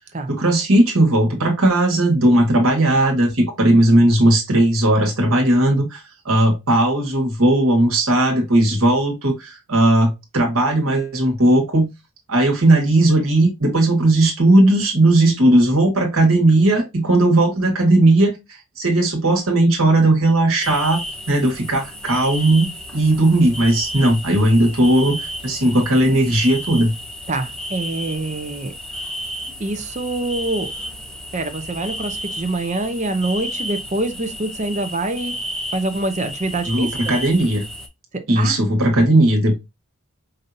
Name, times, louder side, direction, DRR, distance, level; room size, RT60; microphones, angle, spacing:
voice 1, 0.3-11.9 12.3-18.4 18.8-21.0 21.3-26.9 36.7-37.6 38.3-39.6, right 1 dB, 70° right, 1.5 m, -17 dB
sound 1, 20.6-37.9, equal, 5° left, 0.6 m, -32 dB
voice 2, 27.3-28.7 29.6-30.7 31.3-35.4 35.7-37.1 38.4-38.6, right 2 dB, 30° right, 0.6 m, -25 dB
5.2 x 2.8 x 2.6 m
head